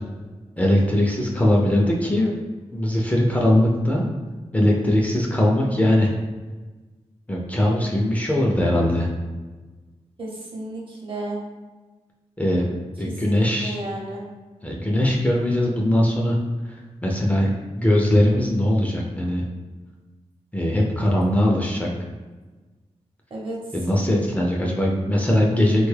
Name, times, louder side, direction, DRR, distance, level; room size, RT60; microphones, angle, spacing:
voice 1, 0.6-2.3 2.7-4.1 4.5-6.1 7.3-9.1 12.4-12.6 13.0-13.8 14.6-16.4 17.0-17.5 17.8-19.4 20.5-21.9 23.7-25.9, left 1 dB, 15° left, -2 dB, 0.4 m, -20 dB
voice 2, 10.2-11.4 13.0-14.2 23.3-23.6, right 1 dB, 50° right, -3 dB, 0.8 m, -33 dB
3.4 x 2.2 x 3.2 m, 1.3 s
wide cardioid pair, 105°, 11 cm